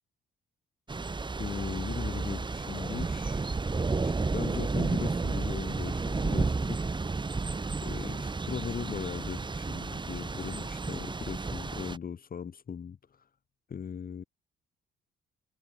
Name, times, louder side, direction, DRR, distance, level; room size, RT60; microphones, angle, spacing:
Thunder / Rain, 0.9-12.0, right 3 dB, 25° right, 2.2 m, -32 dB
voice 1, 1.4-3.5 4.0-6.9 7.8-13.3 13.7-14.2, left 7 dB, 45° left, 3.4 m, -39 dB
cardioid pair, 90°, 20 cm